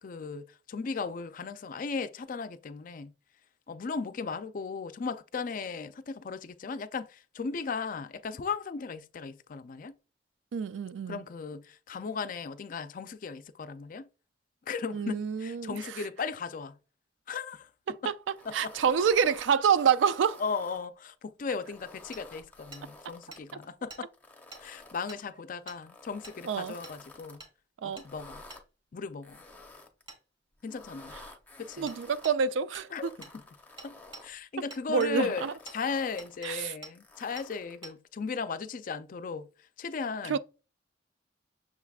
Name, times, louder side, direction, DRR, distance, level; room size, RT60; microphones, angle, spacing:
voice 1, 0.0-3.1 3.7-10.0 11.1-14.1 14.7-16.8 17.3-17.7 18.0-18.1 18.5-18.7 20.4-24.1 24.6-27.4 27.8-28.4 28.9-29.4 30.6-31.1 31.6-31.9 32.9-33.3 33.8-33.9 34.2-39.5 39.8-40.4, left 5 dB, 45° left, 0.4 m, -36 dB
voice 2, 10.5-11.2 14.9-16.0 17.9-18.1 18.5-20.4 26.4-26.7 27.8-28.0 31.8-33.1 34.9-35.5 36.4-36.7 40.3-40.4, right 7 dB, 90° right, 0.4 m, -27 dB
sound 1, 18.3-20.9 21.4-23.7 24.1-25.2 25.8-27.4 27.9-28.6 29.2-30.1 30.6-32.3 32.8-34.3 34.8-36.4 36.9-37.8, left 2 dB, 10° left, 0.7 m, -52 dB
Hammer, 22.1-22.2 22.7-22.8 23.3-23.4 23.9-24.0 24.5-24.6 25.1-25.2 25.7-25.8 26.2-26.4 26.8-27.0 27.4-27.5 28.0-28.1 28.5-28.6 30.1-30.2 31.9-32.0 32.2-32.4 32.7-32.9 33.2-33.3 33.8-34.2 34.7-35.1 35.7-35.8 36.2-36.5 36.8-36.9 37.4-37.5 37.8-37.9, right 3 dB, 30° right, 1.6 m, -47 dB
6.5 x 3.4 x 2.3 m
head